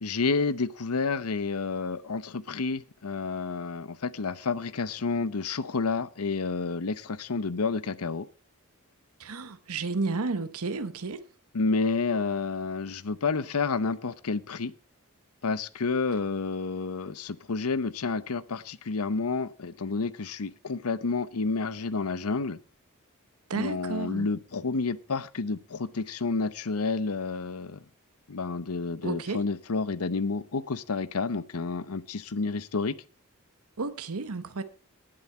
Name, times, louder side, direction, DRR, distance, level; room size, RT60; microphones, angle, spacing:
voice 1, 0.0-8.3 11.5-14.7 15.4-22.6 23.5-27.8 28.3-33.0, left 4 dB, 85° left, 0.8 m, -30 dB
voice 2, 9.2-11.2 23.5-24.3 29.0-29.4 33.8-34.6, right 3 dB, 80° right, 0.9 m, -32 dB
18.5 x 7.8 x 4.4 m
head